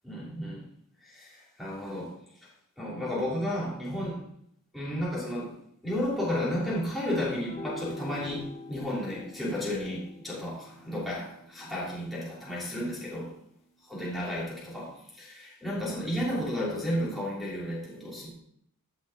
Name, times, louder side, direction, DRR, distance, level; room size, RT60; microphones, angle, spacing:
voice 1, 0.0-0.6 1.0-2.1 2.8-4.2 4.7-5.5 5.8-13.3 13.9-18.3, left 1 dB, ahead, -8 dB, 3.0 m, -33 dB
sound 1, 7.3-13.9, left 1 dB, 30° left, 1.2 m, -46 dB
15.5 x 6.0 x 3.7 m, 0.70 s
head